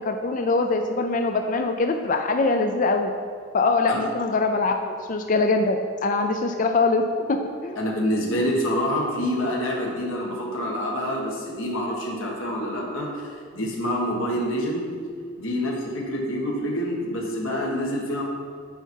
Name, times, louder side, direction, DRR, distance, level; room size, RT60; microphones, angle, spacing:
voice 1, 0.0-3.1 3.5-7.0 7.3-7.4 7.6-7.8, left 3 dB, 40° left, 5 dB, 0.4 m, -23 dB
voice 2, 7.7-14.9 15.4-18.2, equal, 75° left, -2 dB, 1.6 m, -27 dB
8.9 x 5.8 x 4.6 m, 2.2 s
head